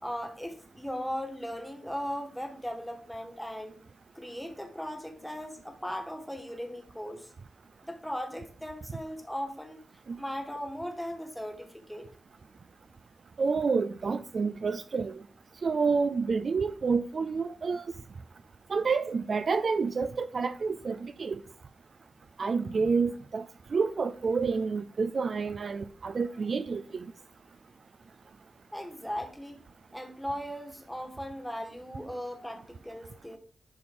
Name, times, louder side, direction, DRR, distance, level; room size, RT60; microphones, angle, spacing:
voice 1, 0.0-3.8 4.1-7.3 7.8-9.8 10.2-12.1 28.7-29.6 29.9-33.4, equal, 5° left, 1.5 m, -38 dB
voice 2, 13.4-15.2 15.6-17.8 18.7-21.4 22.4-23.4 23.7-27.1, right 5 dB, 45° right, 0.4 m, -29 dB
11.0 x 4.3 x 3.6 m
wide cardioid pair, 155°, 0 cm